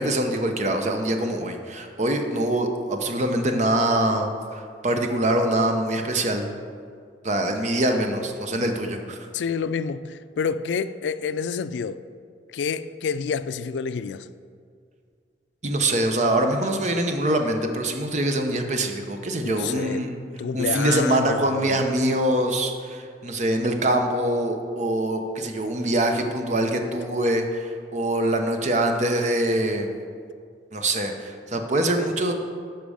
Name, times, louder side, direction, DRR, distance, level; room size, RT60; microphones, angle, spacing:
voice 1, 0.0-6.5 7.2-9.2 15.6-20.1 20.5-29.9 30.7-32.3, right 1 dB, 40° right, 0.8 m, -24 dB
voice 2, 9.3-12.0 12.5-14.3 19.4-20.1 20.4-21.8, left 6 dB, 85° left, 0.3 m, -28 dB
10.5 x 6.0 x 5.0 m
head